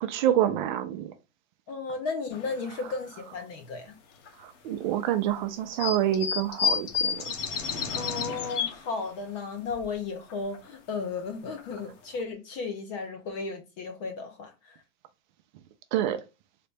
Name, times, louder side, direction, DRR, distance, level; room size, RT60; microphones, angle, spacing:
voice 1, 0.0-1.1 4.4-7.3 15.9-16.2, right 11 dB, 40° right, 0.5 m, -27 dB
voice 2, 1.7-4.0 7.9-14.8, left 4 dB, 25° left, 0.4 m, -34 dB
sound 1, 2.3-2.6 3.2-3.3 4.3-4.4 5.7-8.9 9.4-9.5 9.7-9.8 10.3-10.6 11.2-11.3 11.6-11.8 12.2-12.3, left 6 dB, 70° left, 1.0 m, -30 dB
4.0 x 2.1 x 3.2 m
supercardioid pair, 160°, 38 cm